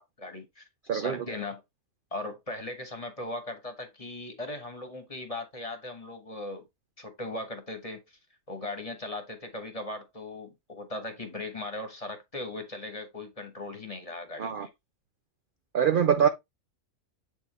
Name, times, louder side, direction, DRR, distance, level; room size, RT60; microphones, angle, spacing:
voice 1, 0.2-0.6 0.9-1.6 2.1-6.6 7.0-8.2 8.5-14.7, left 2 dB, 25° left, 1.4 m, -38 dB
voice 2, 0.9-1.2 14.4-14.7 15.7-16.3, right 8 dB, 60° right, 0.5 m, -24 dB
7.9 x 4.5 x 3.1 m
omnidirectional pair, 1.5 m